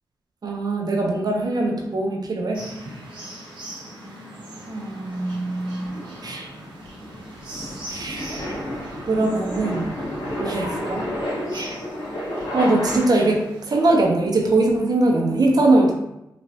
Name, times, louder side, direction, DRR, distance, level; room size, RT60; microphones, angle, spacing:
voice 1, 0.4-2.6 4.7-6.5 7.5-8.6 9.1-10.0 10.4-11.1 11.5-11.8 12.5-13.4 13.6-15.9, right 2 dB, 50° right, 0 dB, 0.8 m, -22 dB
sound 1, 2.5-14.0, right 1 dB, 85° right, 1.0 m, -40 dB
sound 2, 5.9-13.5, equal, 70° left, 1.3 m, -31 dB
3.0 x 2.5 x 2.8 m, 0.86 s
cardioid pair, 45°, 8 cm